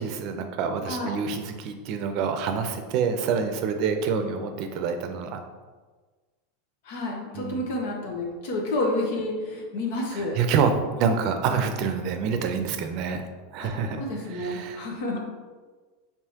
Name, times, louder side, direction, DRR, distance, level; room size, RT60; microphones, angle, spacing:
voice 1, 0.0-5.4 7.3-7.6 10.1-13.2 13.5-14.8, right 6 dB, 55° right, 7 dB, 0.5 m, -27 dB
voice 2, 0.9-1.2 6.9-10.4 11.5-11.6 13.6-13.7 14.0-15.2, left 1 dB, 70° left, 0 dB, 1.0 m, -30 dB
4.8 x 3.4 x 2.9 m, 1.4 s
hypercardioid pair, 105°, 0 cm